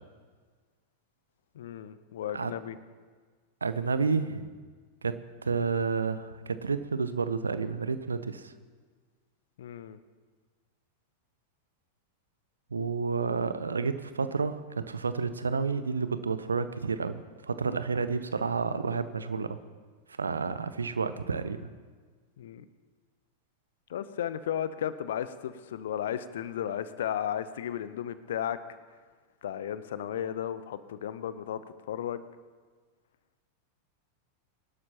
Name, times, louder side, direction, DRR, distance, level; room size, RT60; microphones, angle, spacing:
voice 1, 1.5-2.8 9.6-10.0 22.4-22.6 23.9-28.6 29.4-31.6 31.9-32.3, left 10 dB, 60° left, 14 dB, 0.7 m, -34 dB
voice 2, 3.6-4.4 5.0-8.5 12.7-19.6 20.2-21.7, right 5 dB, 75° right, 13 dB, 0.7 m, -30 dB
23.5 x 12.0 x 2.9 m, 1.5 s
figure-of-eight pair, 90°, 0 cm